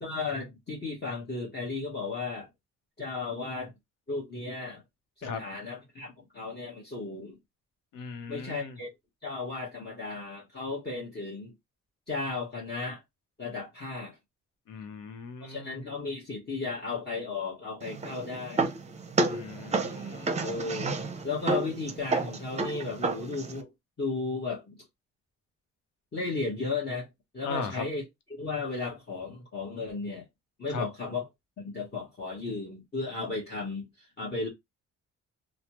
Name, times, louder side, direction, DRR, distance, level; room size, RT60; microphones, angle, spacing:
voice 1, 0.0-2.5 3.0-3.7 4.1-4.8 5.2-7.4 8.3-8.9 9.2-11.5 12.1-13.0 13.4-14.2 15.4-18.7 20.4-20.9 21.2-23.7 24.0-24.8 26.1-27.1 27.3-28.0 28.4-30.3 30.6-31.3 31.6-34.5, left 3 dB, 35° left, 1.2 m, -35 dB
voice 2, 7.9-8.8 14.7-15.8 19.3-20.5 27.4-27.8 30.7-30.8, left 4 dB, 90° left, 0.8 m, -38 dB
sound 1, 17.8-23.6, right 3 dB, 20° right, 0.6 m, -31 dB
3.1 x 2.1 x 2.9 m
cardioid pair, 90°, 30 cm